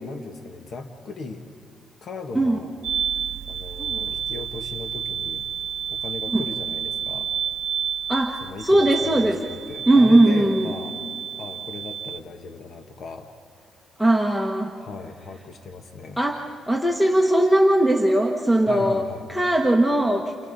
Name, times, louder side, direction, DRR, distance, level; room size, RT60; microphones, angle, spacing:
voice 1, 0.0-1.5 2.0-2.7 3.0-3.2 3.5-5.4 5.9-7.3 8.4-11.0 11.4-13.3 14.8-16.2 18.7-19.3, left 3 dB, 55° left, 5 dB, 1.4 m, -37 dB
sound 1, 2.8-12.2, right 8 dB, 80° right, 0.5 m, -30 dB
voice 2, 3.8-4.1 6.3-6.4 8.1-9.4 9.9-10.6 14.0-14.8 16.2-19.0 19.3-20.3, right 1 dB, 5° left, 2 dB, 1.4 m, -19 dB
29.5 x 29.5 x 4.1 m, 2.3 s
cardioid pair, 90°, 0 cm